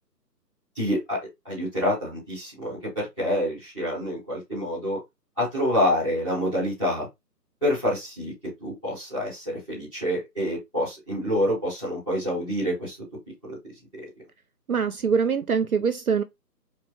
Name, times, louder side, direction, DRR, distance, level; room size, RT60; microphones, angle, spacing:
voice 1, 0.7-1.2 1.4-5.0 5.4-7.1 7.6-13.0 13.5-13.6, equal, 5° left, 1.0 m, -27 dB
voice 2, 14.7-16.2, right 6 dB, 60° right, 0.5 m, -23 dB
4.5 x 3.0 x 2.8 m
figure-of-eight pair, 155°, 50 cm